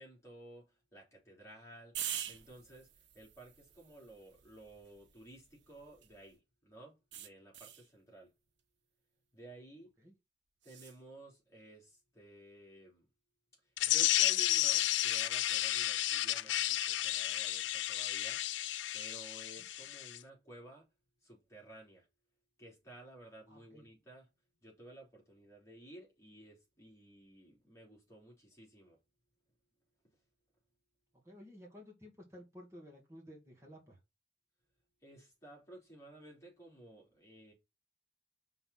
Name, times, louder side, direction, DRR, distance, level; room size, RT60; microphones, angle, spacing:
voice 1, 0.0-8.3 9.3-9.9 10.6-13.1 13.9-18.4 18.9-20.9 21.2-22.1 22.6-24.3 24.6-29.0 35.0-37.5, right 1 dB, 15° left, 3.4 m, -55 dB
sound 1, 1.9-6.3 7.1-7.9 10.6-11.0, right 10 dB, 85° right, 0.9 m, -46 dB
sound 2, 13.8-20.2, left 14 dB, 90° left, 0.4 m, -32 dB
voice 2, 23.5-23.8 31.2-34.0, equal, 15° right, 1.9 m, -54 dB
5.7 x 4.0 x 5.7 m
head